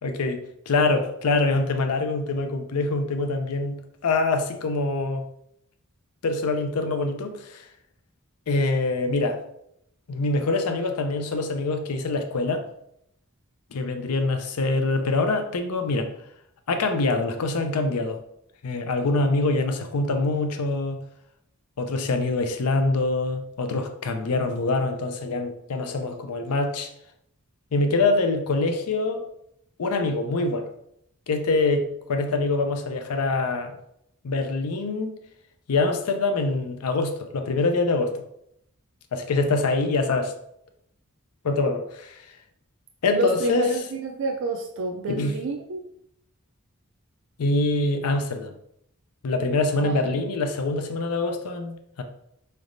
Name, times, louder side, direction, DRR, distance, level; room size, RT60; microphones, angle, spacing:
voice 1, 0.0-3.8 4.0-5.2 6.2-7.7 8.5-9.4 10.1-12.6 13.7-16.1 16.7-18.2 18.6-21.0 21.8-26.9 27.7-29.2 29.8-30.7 31.3-33.8 34.2-35.1 35.7-38.1 39.1-40.3 41.4-42.2 43.0-43.8 45.1-45.4 47.4-48.5 49.2-52.0, left 3 dB, 90° left, 6 dB, 0.5 m, -24 dB
voice 2, 43.1-45.8 49.8-50.2, right 2 dB, 55° right, 3 dB, 0.3 m, -29 dB
4.0 x 3.3 x 2.5 m, 0.75 s
head